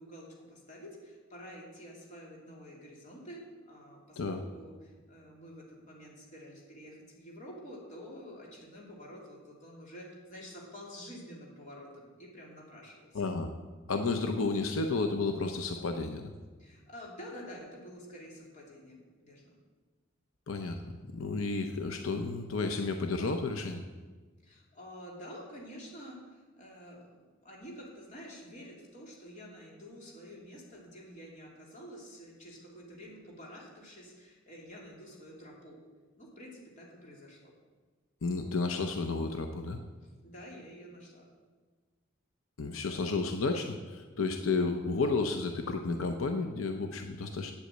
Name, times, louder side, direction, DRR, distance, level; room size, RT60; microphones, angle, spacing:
voice 1, 0.0-13.2 16.6-19.5 24.4-35.8 36.2-37.5 40.2-41.3, equal, 35° left, -3 dB, 2.9 m, -49 dB
voice 2, 13.1-13.5 13.9-16.3 20.5-23.8 38.2-39.8 42.6-47.5, left 3 dB, 85° left, 5 dB, 0.7 m, -32 dB
8.5 x 8.1 x 7.8 m, 1.4 s
head